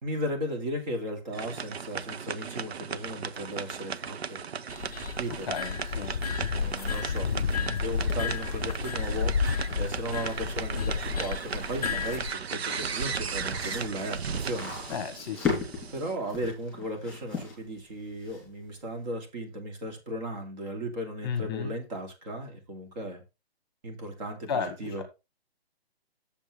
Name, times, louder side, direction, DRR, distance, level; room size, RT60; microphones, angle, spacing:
voice 1, 0.0-4.4 5.2-5.5 6.4-14.7 15.9-23.2 23.8-25.0, right 1 dB, 40° right, 2.8 m, -36 dB
sound 1, 1.3-16.1, right 6 dB, 75° right, 0.8 m, -36 dB
sound 2, 4.7-12.3, left 6 dB, 40° left, 0.4 m, -31 dB
voice 2, 5.5-6.1 14.9-15.6 21.2-21.7 24.5-25.0, left 6 dB, 25° left, 1.2 m, -33 dB
sound 3, 7.9-18.7, left 5 dB, ahead, 2.9 m, -39 dB
8.7 x 7.2 x 3.3 m
hypercardioid pair, 165°, 32 cm